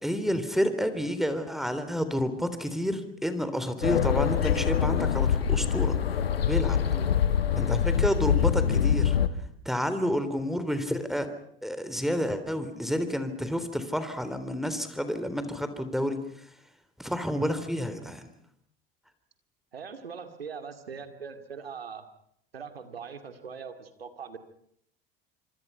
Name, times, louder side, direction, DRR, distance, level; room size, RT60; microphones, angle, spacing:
voice 1, 0.0-6.0 6.5-6.8 7.6-9.2 9.7-11.3 11.6-16.2 17.0-18.3, equal, ahead, 10 dB, 3.6 m, -29 dB
sound 1, 3.8-9.3, left 8 dB, 85° left, 1.4 m, -24 dB
voice 2, 6.8-7.2 19.7-22.1 22.5-24.4, right 6 dB, 90° right, 8 dB, 2.5 m, -41 dB
26.0 x 26.0 x 5.7 m, 0.68 s
hypercardioid pair, 70°, 29 cm